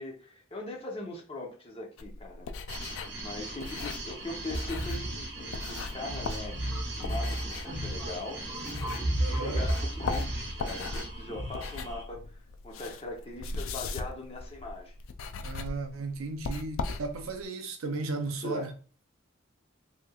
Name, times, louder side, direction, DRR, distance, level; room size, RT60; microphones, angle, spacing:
voice 1, 0.0-2.5 3.2-8.5 9.2-12.2 12.6-14.9 18.4-18.7, left 2 dB, 30° left, 0.9 m, -40 dB
sound 1, 2.0-9.3 9.6-17.4, left 4 dB, 75° left, 0.3 m, -39 dB
sound 2, 2.7-12.0, right 2 dB, 55° right, 0.8 m, -41 dB
sound 3, 4.5-11.5, right 1 dB, ahead, 0.9 m, -34 dB
voice 2, 9.2-9.7 15.4-18.7, right 3 dB, 90° right, 0.5 m, -35 dB
3.2 x 2.9 x 2.4 m
head